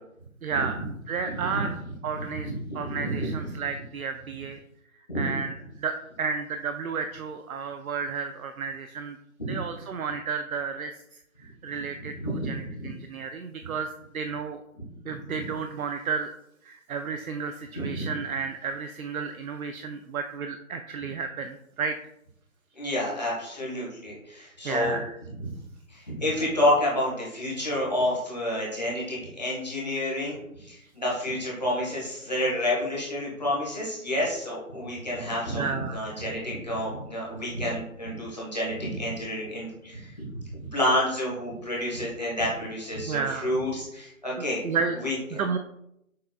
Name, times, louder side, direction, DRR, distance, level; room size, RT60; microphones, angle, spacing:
voice 1, 0.4-0.8 1.1-4.6 5.1-5.5 5.8-9.2 9.5-10.9 11.4-13.9 14.1-14.6 15.1-16.3 16.6-22.0 24.6-25.2 35.6-36.0 43.1-43.6 44.4-45.0 45.4-45.6, right 5 dB, 75° right, 7 dB, 0.5 m, -32 dB
voice 2, 1.3-1.6 2.1-3.5 5.1-5.3 9.5-9.6 12.2-12.5 12.8-12.9 15.3-15.4 17.7-18.1 22.8-25.0 25.4-25.5 25.9-40.4 40.7-44.6 45.0-45.4, left 1 dB, 30° left, -5 dB, 1.3 m, -29 dB
6.5 x 3.4 x 2.3 m, 0.79 s
figure-of-eight pair, 175°, 43 cm